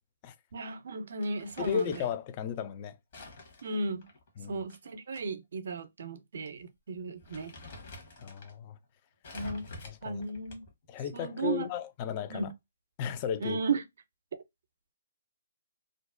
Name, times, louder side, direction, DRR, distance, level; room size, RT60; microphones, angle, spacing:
voice 1, 0.5-2.0 3.6-4.1 4.5-7.5 9.3-9.7 10.0-10.6 11.1-11.7 12.3-12.5 13.4-13.8, right 3 dB, 55° right, 0.5 m, -34 dB
Crumpling crinkling, 1.2-2.2 3.1-5.2 5.6-5.7 6.5-6.6 7.0-8.5 9.2-10.8, left 2 dB, 45° left, 1.0 m, -49 dB
voice 2, 1.6-3.0 4.4-4.6 8.2-8.8 9.4-9.5 9.8-10.2 10.9-12.5 13.0-13.6, left 9 dB, 30° left, 0.3 m, -35 dB
2.5 x 2.0 x 2.4 m
figure-of-eight pair, 135°, 0 cm